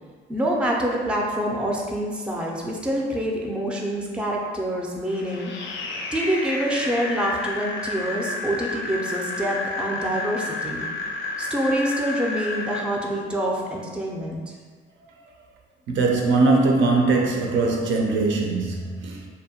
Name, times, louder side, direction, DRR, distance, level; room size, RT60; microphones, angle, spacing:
voice 1, 0.3-5.5 6.1-10.9 11.4-14.5, right 1 dB, 5° right, -1 dB, 0.3 m, -26 dB
sound 1, 5.1-12.8, left 3 dB, 70° left, 0.4 m, -31 dB
voice 2, 15.9-19.3, right 3 dB, 70° right, 1 dB, 0.4 m, -21 dB
2.6 x 2.1 x 2.7 m, 1.5 s
cardioid pair, 90°, 20 cm